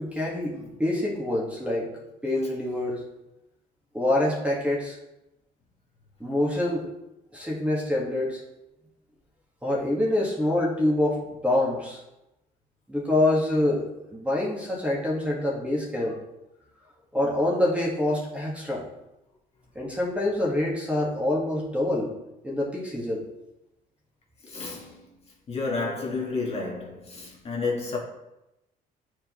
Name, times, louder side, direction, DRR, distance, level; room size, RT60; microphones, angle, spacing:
voice 1, 0.0-1.9 2.2-3.0 3.9-5.0 6.2-6.9 7.3-8.4 9.6-12.0 12.9-13.8 14.1-16.2 17.1-18.8 19.7-22.1 22.4-23.2, left 1 dB, 5° right, 1.6 m, -26 dB
voice 2, 24.4-25.1 25.5-28.0, left 3 dB, 35° left, 1.6 m, -31 dB
8.9 x 4.7 x 3.0 m
cardioid pair, 110°, 17 cm